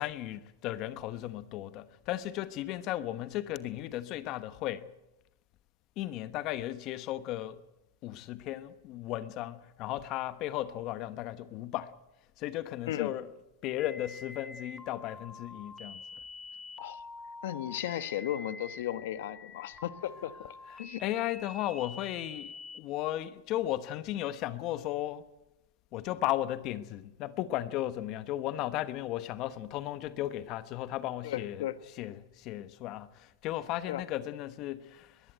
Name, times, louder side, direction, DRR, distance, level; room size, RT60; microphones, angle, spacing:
voice 1, 0.0-4.9 6.0-7.6 8.0-11.9 12.4-13.4 13.6-16.0 20.4-25.3 25.9-35.2, left 14 dB, 45° left, 1.1 m, -35 dB
sound 1, 13.8-22.8, left 3 dB, 10° left, 1.1 m, -47 dB
voice 2, 17.4-21.0 31.2-31.8 33.9-34.0, left 12 dB, 75° left, 1.3 m, -35 dB
21.0 x 15.0 x 9.0 m
supercardioid pair, 130°, 0 cm